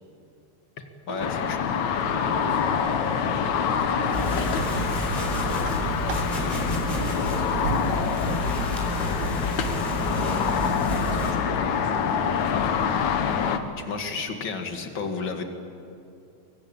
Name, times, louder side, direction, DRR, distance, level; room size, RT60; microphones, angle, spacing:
voice 1, 0.8-1.6 13.8-15.5, left 4 dB, 45° left, 5 dB, 2.6 m, -32 dB
sound 1, 1.2-13.6, left 7 dB, 75° left, 2.6 m, -26 dB
voice 2, 1.7-4.8 5.4-12.5, right 3 dB, 50° right, 1 dB, 4.2 m, -41 dB
sound 2, 3.6-8.4 9.3-9.5, right 6 dB, 70° right, 1.1 m, -37 dB
sound 3, 4.1-11.3, right 1 dB, 10° left, 5.0 m, -30 dB
24.5 x 23.5 x 8.8 m, 2.6 s
omnidirectional pair, 3.4 m